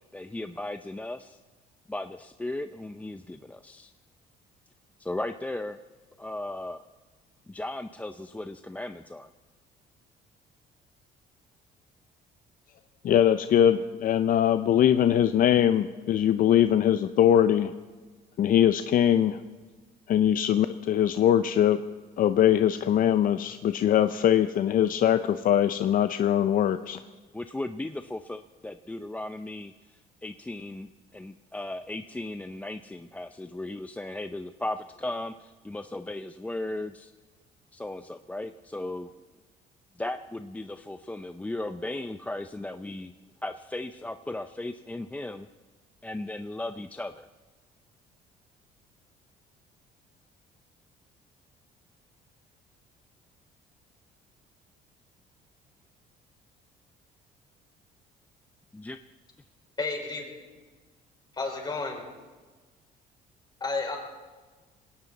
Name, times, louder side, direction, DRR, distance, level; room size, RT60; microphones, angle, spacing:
voice 1, 0.1-1.4 1.9-3.9 5.0-5.8 6.2-6.8 7.5-9.3 27.3-37.1 37.7-39.1 40.0-43.1 43.4-45.5 46.0-47.3 58.7-59.0, left 2 dB, 10° left, 9 dB, 0.5 m, -36 dB
voice 2, 13.0-17.7 18.4-19.4 20.1-21.8 22.2-27.0, left 10 dB, 55° left, 10 dB, 0.6 m, -22 dB
voice 3, 59.8-60.3 61.3-62.0 63.6-64.0, left 3 dB, 25° left, 1 dB, 4.7 m, -31 dB
20.5 x 17.5 x 4.1 m, 1.3 s
cardioid pair, 110°, 17 cm